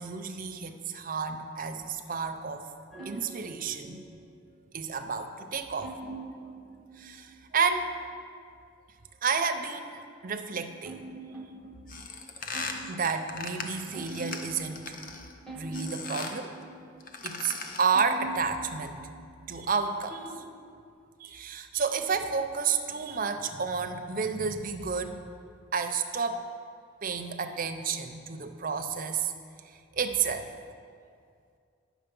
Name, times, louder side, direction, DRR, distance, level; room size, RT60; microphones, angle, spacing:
voice 1, 0.0-2.7 3.0-4.0 4.7-6.0 6.4-6.5 7.0-7.9 9.2-11.0 12.9-15.1 15.5-16.7 17.2-19.0 19.5-20.3 21.2-25.2 25.7-26.5 27.0-29.3 29.9-30.5, right 5 dB, 45° right, 7 dB, 0.5 m, -31 dB
sound 1, 2.9-4.7 5.8-7.8 10.5-17.6 17.9-20.9, right 3 dB, 5° left, 1.0 m, -44 dB
sound 2, 11.9-15.3 15.7-16.4 17.0-18.0, left 4 dB, 45° left, 0.7 m, -39 dB
9.1 x 6.2 x 5.3 m, 2.2 s
head